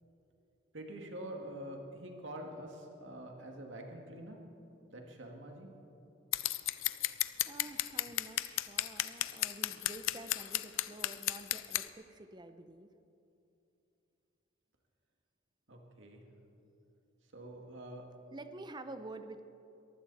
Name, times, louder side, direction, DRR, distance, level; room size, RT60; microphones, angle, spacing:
voice 1, 0.7-4.4 4.9-5.7 15.7-16.2 17.3-18.1, right 1 dB, 70° right, 2 dB, 2.2 m, -46 dB
Scissors, 6.3-11.8, left 15 dB, 85° left, 0.5 m, -33 dB
voice 2, 7.5-12.9 18.3-19.4, right 2 dB, 20° right, 9 dB, 0.7 m, -49 dB
22.5 x 15.5 x 4.2 m, 2.8 s
head